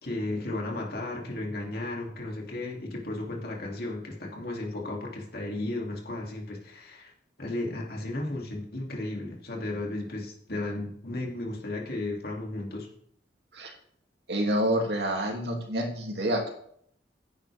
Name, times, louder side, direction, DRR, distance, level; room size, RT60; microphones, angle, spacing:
voice 1, 0.0-7.1 7.4-12.9, left 2 dB, 55° left, -1 dB, 2.9 m, -34 dB
voice 2, 14.3-16.5, right 1 dB, 65° right, 1 dB, 2.7 m, -28 dB
15.5 x 10.0 x 3.6 m, 0.68 s
head